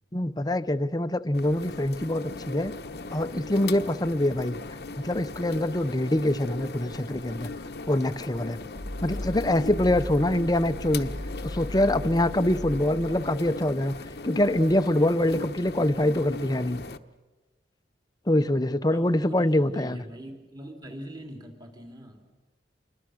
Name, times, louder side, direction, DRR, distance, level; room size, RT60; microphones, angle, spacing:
voice 1, 0.1-2.7 3.1-4.6 5.0-7.5 7.9-8.6 9.0-11.1 11.4-13.9 14.2-16.8 18.3-20.0, left 1 dB, 20° left, 11 dB, 0.7 m, -24 dB
sound 1, 1.3-17.0, left 3 dB, 55° left, 0.9 m, -39 dB
sound 2, 8.7-13.6, equal, 70° right, 5.6 m, -37 dB
voice 2, 18.9-22.3, right 1 dB, 20° right, 2 dB, 2.8 m, -42 dB
27.0 x 23.5 x 6.3 m, 1.2 s
head